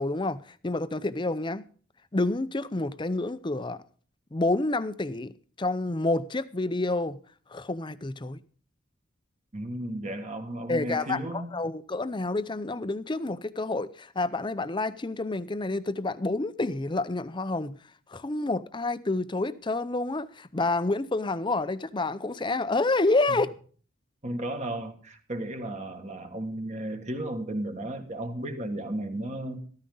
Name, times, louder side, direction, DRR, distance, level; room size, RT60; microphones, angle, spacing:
voice 1, 0.0-1.7 2.1-3.8 4.3-7.2 7.5-8.4 10.7-17.8 18.1-23.5, left 2 dB, 25° left, 0.6 m, -28 dB
voice 2, 9.5-11.7 23.3-23.4 24.2-29.6, right 1 dB, 35° right, 1.8 m, -34 dB
14.0 x 13.5 x 3.9 m
head